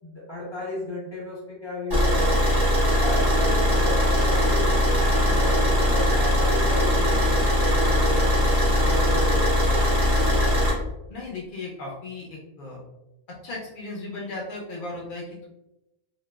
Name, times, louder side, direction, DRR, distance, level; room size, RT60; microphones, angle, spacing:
voice 1, 0.0-2.4 2.8-8.4 8.8-9.8, left 1 dB, 20° left, -9 dB, 1.2 m, -34 dB
Car / Idling, 1.9-10.7, left 1 dB, 25° right, 0.5 m, -21 dB
voice 2, 11.1-12.8 13.3-15.5, left 2 dB, 90° left, -3 dB, 0.4 m, -36 dB
2.8 x 2.2 x 2.2 m, 0.94 s
omnidirectional pair, 1.5 m